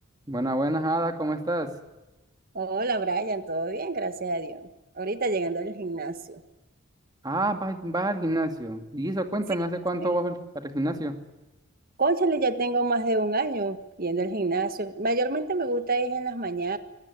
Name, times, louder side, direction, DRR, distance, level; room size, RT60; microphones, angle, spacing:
voice 1, 0.3-1.7 7.2-11.1, right 1 dB, 20° right, 6 dB, 2.2 m, -28 dB
voice 2, 2.5-4.7 5.0-6.4 12.0-16.8, right 3 dB, 45° right, 9 dB, 1.5 m, -27 dB
25.0 x 17.5 x 9.6 m, 1.0 s
head